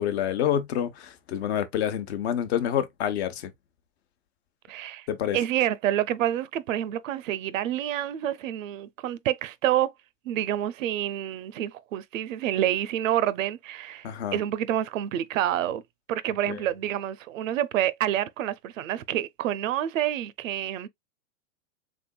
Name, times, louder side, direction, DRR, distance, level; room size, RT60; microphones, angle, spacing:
voice 1, 0.0-3.5 5.1-5.4 14.0-14.4 16.5-16.6, left 10 dB, 55° left, 0.9 m, -27 dB
voice 2, 4.7-5.1 5.3-9.9 10.2-15.8 16.1-20.9, right 12 dB, 75° right, 0.6 m, -28 dB
3.8 x 3.5 x 2.2 m
hypercardioid pair, 145°, 39 cm